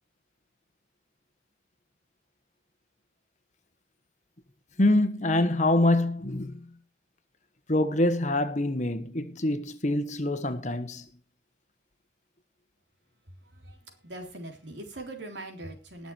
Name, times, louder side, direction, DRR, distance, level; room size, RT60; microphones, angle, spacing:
voice 1, 4.8-6.7 7.7-11.1, left 1 dB, 40° left, 1.4 m, -25 dB
voice 2, 13.3-16.1, right 1 dB, 70° right, 3.7 m, -42 dB
19.5 x 7.1 x 4.5 m
head